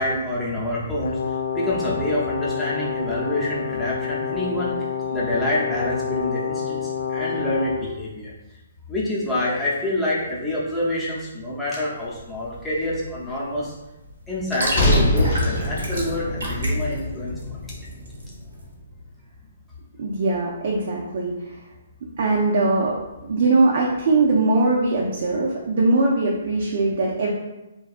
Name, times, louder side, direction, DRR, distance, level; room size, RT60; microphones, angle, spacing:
voice 1, 0.0-8.3 8.9-13.7 14.3-17.3, left 1 dB, 5° left, -8 dB, 0.7 m, -27 dB
Brass instrument, 1.0-7.9, left 7 dB, 85° left, 0.3 m, -28 dB
sound 1, 12.0-18.7, right 1 dB, 85° right, 0.8 m, -29 dB
sound 2, 14.7-19.0, left 1 dB, 40° left, 0.7 m, -25 dB
voice 2, 20.0-21.6 22.2-27.3, right 3 dB, 60° right, -3 dB, 0.4 m, -21 dB
2.6 x 2.3 x 2.4 m, 1.0 s
hypercardioid pair, 145°, 0 cm